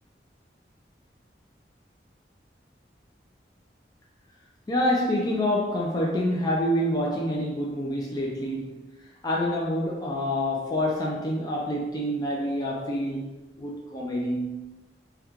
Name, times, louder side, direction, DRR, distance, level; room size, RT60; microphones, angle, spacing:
voice 1, 4.7-8.8 9.2-14.6, left 1 dB, 20° left, -2 dB, 0.4 m, -27 dB
3.0 x 2.2 x 3.5 m, 1.1 s
head